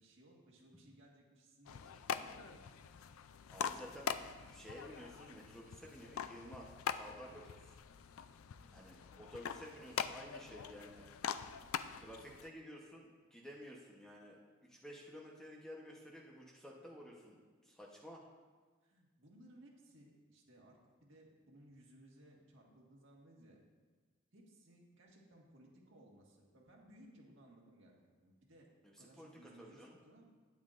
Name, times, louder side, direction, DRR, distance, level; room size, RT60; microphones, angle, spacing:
voice 1, 0.0-3.0 8.6-8.7 18.8-23.6 24.3-27.9 28.2-28.7 29.0-30.3, right 1 dB, 65° right, -2 dB, 1.8 m, -62 dB
sound 1, 1.7-12.5, left 7 dB, 90° left, 0.4 m, -44 dB
voice 2, 3.5-4.1 4.4-7.8 8.7-11.1 12.0-14.4 14.7-18.2 29.0-30.0, equal, 5° left, -3 dB, 1.0 m, -53 dB
12.0 x 9.6 x 2.5 m, 1.4 s
head